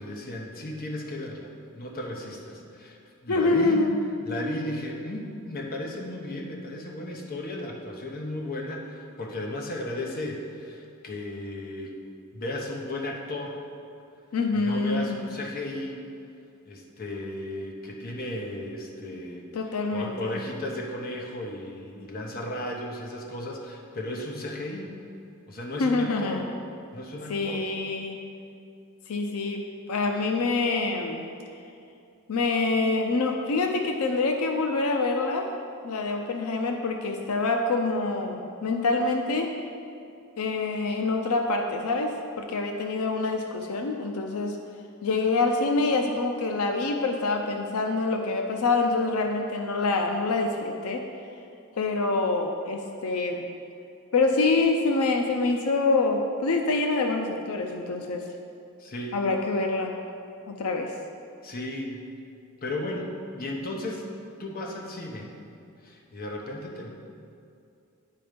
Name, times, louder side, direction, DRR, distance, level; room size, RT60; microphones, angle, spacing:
voice 1, 0.0-1.5 1.7-3.8 4.3-12.0 12.3-13.6 14.6-16.0 16.7-19.4 19.9-24.9 25.5-26.4 26.9-27.6 58.8-59.2 61.4-62.0 62.6-64.0 64.4-65.4 65.8-66.9, left 1 dB, 45° left, 0 dB, 0.9 m, -35 dB
voice 2, 3.3-3.9 14.3-15.2 19.5-20.4 25.8-26.4 27.3-28.2 29.1-29.6 29.9-31.3 32.3-35.5 35.8-39.5 40.4-44.6 45.0-51.0 51.8-53.5 54.1-58.2 59.1-60.0 60.5-60.9, left 3 dB, 90° left, 3 dB, 0.6 m, -26 dB
9.4 x 4.3 x 5.1 m, 2.5 s
head